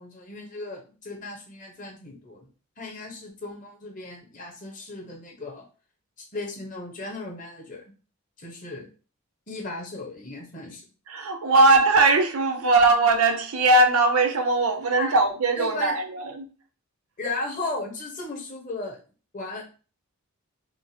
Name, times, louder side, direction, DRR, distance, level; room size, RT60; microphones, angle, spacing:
voice 1, 0.0-2.5 2.8-5.7 6.2-7.8 8.4-8.9 9.5-10.8 15.0-15.2 15.5-16.0 17.2-19.0 19.3-19.7, left 2 dB, 35° left, 1.2 m, -35 dB
voice 2, 11.1-16.5, right 2 dB, 80° right, 0.7 m, -20 dB
4.7 x 2.0 x 4.2 m
head